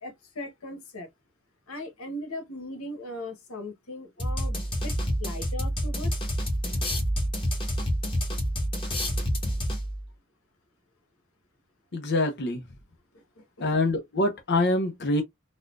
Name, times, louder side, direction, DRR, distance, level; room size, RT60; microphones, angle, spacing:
voice 1, 0.0-1.1 1.7-4.9 5.2-6.3 13.1-13.7, left 1 dB, 90° left, 1.2 m, -39 dB
sound 1, 4.2-10.1, equal, 25° left, 1.3 m, -28 dB
voice 2, 11.9-12.7 13.6-15.2, left 2 dB, 55° left, 0.7 m, -25 dB
4.1 x 2.3 x 2.5 m
head